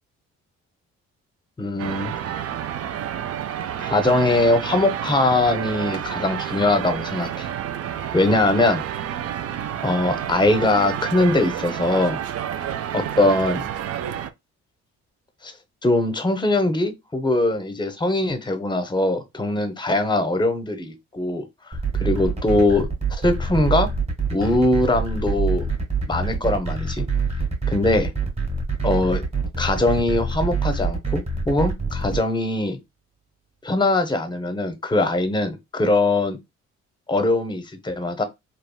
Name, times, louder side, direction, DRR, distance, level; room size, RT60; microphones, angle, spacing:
voice 1, 1.6-2.1 3.8-7.5 8.1-9.2 9.8-12.2 12.9-13.6 15.4-15.5 15.8-21.5 22.0-23.9 24.3-25.7 26.1-27.1 27.7-28.1 28.8-29.2 29.6-32.8 33.6-36.4 37.1-38.2, left 2 dB, 15° left, 0.7 m, -21 dB
sound 1, 1.8-14.3, right 10 dB, 55° right, 0.4 m, -29 dB
sound 2, 21.7-32.2, right 5 dB, 20° right, 1.3 m, -25 dB
3.4 x 2.3 x 2.2 m
cardioid pair, 90°, 30 cm